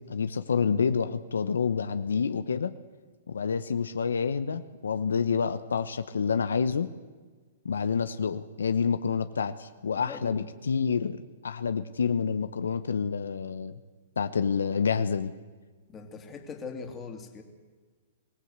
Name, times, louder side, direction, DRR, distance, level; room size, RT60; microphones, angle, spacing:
voice 1, 0.1-2.7 3.3-6.9 7.6-11.2 11.4-13.8 14.2-15.3, left 6 dB, 90° left, 11 dB, 0.9 m, -28 dB
voice 2, 10.0-10.4 15.9-17.4, left 5 dB, 20° left, 4 dB, 2.8 m, -41 dB
23.5 x 16.5 x 8.1 m, 1.4 s
hypercardioid pair, 140°, 0 cm